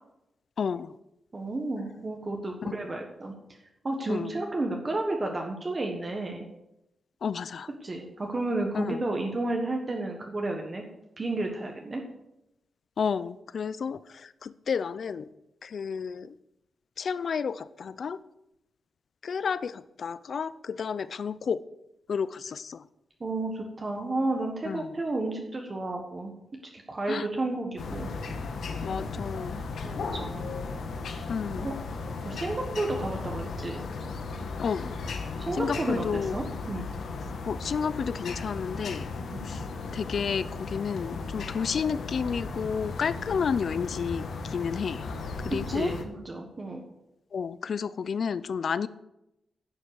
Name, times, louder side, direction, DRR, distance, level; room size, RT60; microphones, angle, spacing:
voice 1, 0.6-1.0 2.6-2.7 4.1-4.4 7.2-7.7 8.7-9.0 13.0-15.3 15.6-16.4 17.0-18.2 19.2-21.6 22.1-22.9 24.6-25.0 27.1-27.3 28.8-29.6 31.3-31.7 34.6-35.0 35.6-36.4 37.5-39.1 39.4-39.6 39.9-45.1 45.4-45.9 47.3-48.9, left 6 dB, 50° left, 16 dB, 0.5 m, -31 dB
voice 2, 1.3-3.3 3.8-6.4 7.8-10.8 11.2-12.0 23.2-26.3 26.9-28.1 29.8-30.5 31.6-31.7 32.2-33.8 35.4-36.0 36.3-36.9 39.3-39.4 45.5-46.8, right 2 dB, 25° right, 2 dB, 1.3 m, -32 dB
sound 1, 27.8-46.0, left 4 dB, 75° left, 1.4 m, -36 dB
10.5 x 7.6 x 6.8 m, 0.87 s
wide cardioid pair, 175°, 0 cm